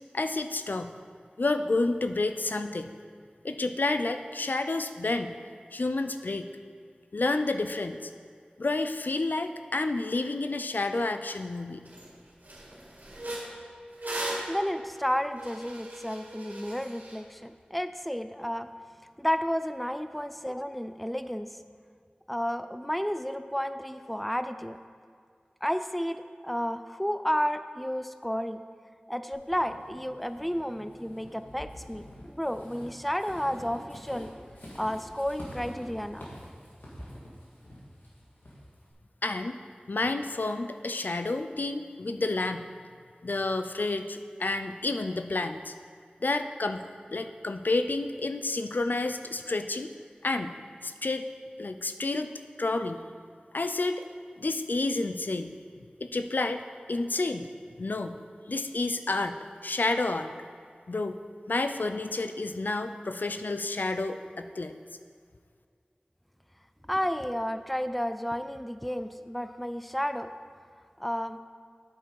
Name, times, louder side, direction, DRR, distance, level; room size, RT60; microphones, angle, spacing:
voice 1, 0.1-0.9 1.4-2.9 3.4-5.4 5.7-6.5 7.1-8.1 8.6-11.8 39.2-39.6 39.9-42.7 43.2-45.7 46.2-49.9 50.2-50.6 50.8-51.2 51.6-52.3 52.6-53.1 53.5-54.0 54.4-55.5 56.0-56.6 56.9-57.5 57.8-58.2 58.5-60.3 60.9-61.1 61.5-64.7, left 2 dB, 70° left, 8 dB, 0.4 m, -30 dB
sound 1, 11.4-11.5 11.9-12.1 12.4-17.2, right 1 dB, 70° right, 2.1 m, -38 dB
voice 2, 14.5-18.7 19.2-21.5 22.3-24.8 25.6-28.6 29.1-34.3 34.7-36.3 66.9-70.3 71.0-71.4, equal, ahead, 10 dB, 0.4 m, -32 dB
Walk footsteps / Squeak, 29.3-38.9, equal, 85° left, 2.0 m, -47 dB
9.0 x 7.1 x 4.8 m, 2.2 s
wide cardioid pair, 55°, 3 cm